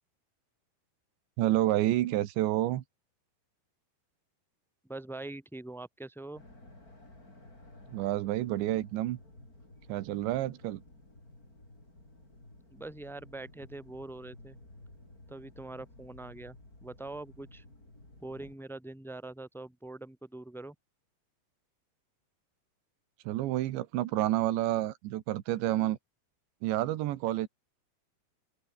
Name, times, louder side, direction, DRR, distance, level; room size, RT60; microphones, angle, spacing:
voice 1, 1.4-2.8 7.9-9.2 9.9-10.8 23.3-26.0 26.6-27.5, right 15 dB, 85° right, 3.6 m, -29 dB
voice 2, 4.8-6.4 12.7-14.6 15.3-17.6 18.2-20.7, right 2 dB, ahead, 3.2 m, -43 dB
sound 1, 6.3-18.6, left 2 dB, 20° left, 7.9 m, -54 dB
open air
omnidirectional pair, 5.0 m